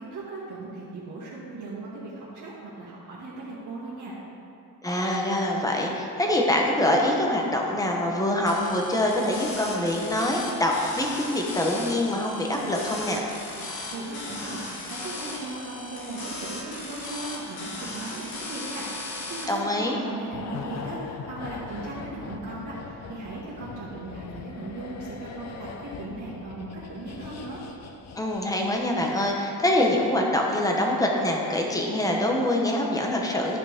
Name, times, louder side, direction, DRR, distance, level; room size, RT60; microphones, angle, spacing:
voice 1, 0.0-4.1 13.9-27.6, right 2 dB, 55° right, -8 dB, 1.9 m, -37 dB
voice 2, 4.8-13.2 19.5-20.0 28.1-33.6, left 1 dB, 10° left, 0 dB, 0.9 m, -25 dB
sound 1, 8.5-19.5, left 2 dB, 70° left, 1.8 m, -37 dB
sound 2, 20.3-28.9 29.1-29.3, left 5 dB, 45° left, 0.6 m, -40 dB
13.0 x 5.9 x 3.6 m, 2.7 s
cardioid pair, 160°, 38 cm